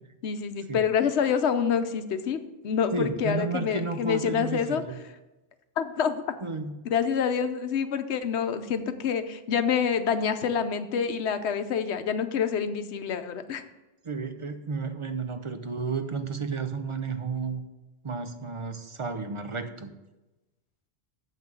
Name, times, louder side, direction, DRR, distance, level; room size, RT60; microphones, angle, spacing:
voice 1, 0.2-4.8 5.8-6.2 6.8-13.6, left 7 dB, 75° left, 10 dB, 1.0 m, -27 dB
voice 2, 2.9-5.0 6.4-6.7 14.0-17.6 18.0-19.9, right 4 dB, 35° right, 8 dB, 0.6 m, -32 dB
7.4 x 5.8 x 7.6 m, 1.0 s
omnidirectional pair, 1.2 m